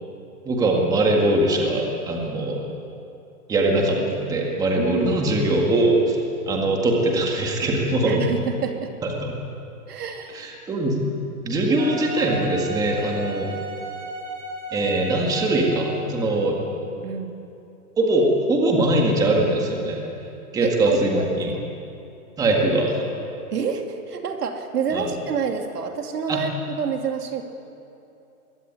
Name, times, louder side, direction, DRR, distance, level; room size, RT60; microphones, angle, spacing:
voice 1, 0.4-2.7 3.5-6.2 6.5-8.2 9.2-9.3 10.3-11.0 11.4-13.5 14.7-16.7 18.0-20.0 20.5-21.5 22.4-23.0 24.9-25.1 26.3-26.4, right 2 dB, 10° right, 0 dB, 1.9 m, -21 dB
voice 2, 4.8-5.3 8.0-8.9 9.9-10.5 17.0-17.4 20.6-21.6 23.5-27.4, right 6 dB, 90° right, 4 dB, 2.9 m, -28 dB
Wind instrument woodwind instrument, 11.8-16.3, right 3 dB, 55° right, 7.0 m, -34 dB
23.0 x 16.0 x 9.3 m, 2.8 s
hypercardioid pair, 170°, 45 cm